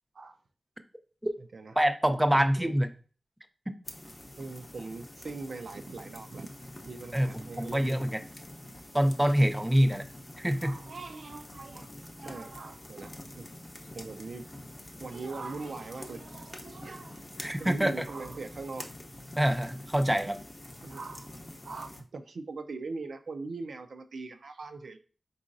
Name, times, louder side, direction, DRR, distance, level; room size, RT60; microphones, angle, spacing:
voice 1, 1.8-2.9 7.1-7.3 7.6-8.2 8.9-10.0 10.4-10.8 17.4-17.9 19.4-20.4, equal, 10° right, 8 dB, 0.4 m, -25 dB
sound 1, 3.8-22.0, left 1 dB, 30° left, 0.6 m, -46 dB
voice 2, 4.4-6.5 6.8-7.8 10.6-11.9 12.2-13.5 13.9-14.5 15.0-18.9 20.8-21.3 21.6-25.0, right 3 dB, 80° right, 7 dB, 0.3 m, -41 dB
4.0 x 3.7 x 2.5 m, 0.38 s
cardioid pair, 60°, 0 cm